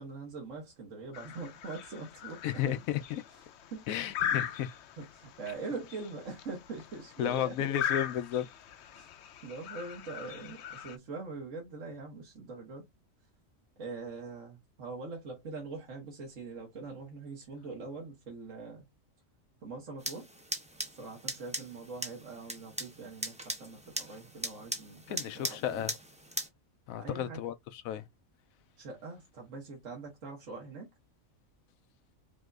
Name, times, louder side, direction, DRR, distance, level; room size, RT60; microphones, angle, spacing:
voice 1, 0.0-2.8 3.7-4.4 5.0-7.7 8.9-9.1 9.4-12.9 13.8-18.9 19.6-20.3 20.9-25.9 27.0-27.4 28.8-30.9, right 3 dB, 70° right, 1.7 m, -43 dB
sound 1, 1.1-11.0, left 9 dB, 65° left, 0.8 m, -39 dB
voice 2, 2.4-3.2 3.9-4.7 7.2-8.5 25.1-25.9 26.9-28.0, left 10 dB, 85° left, 1.0 m, -33 dB
sound 2, 20.0-26.5, right 1 dB, 5° right, 0.7 m, -40 dB
5.8 x 2.7 x 2.4 m
omnidirectional pair, 1.4 m